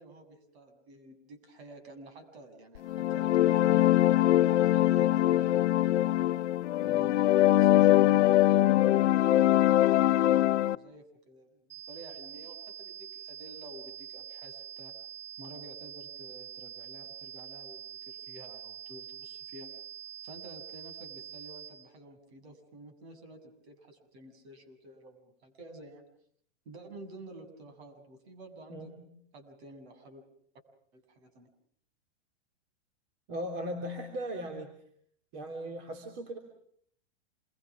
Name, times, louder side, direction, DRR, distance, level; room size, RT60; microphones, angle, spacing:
voice 1, 0.0-4.2 4.6-6.3 6.8-14.9 15.4-19.8 20.2-26.0 26.7-29.0 29.3-30.2 30.9-31.5, right 1 dB, 65° right, 7 dB, 7.1 m, -50 dB
sound 1, 2.8-10.8, left 14 dB, 75° left, 0.9 m, -23 dB
sound 2, 11.7-21.7, right 10 dB, 10° right, 4.8 m, -45 dB
voice 2, 28.7-29.1 33.3-34.7 35.3-36.4, equal, 40° right, 5 dB, 3.3 m, -38 dB
28.0 x 23.0 x 6.1 m, 0.66 s
supercardioid pair, 160°, 35 cm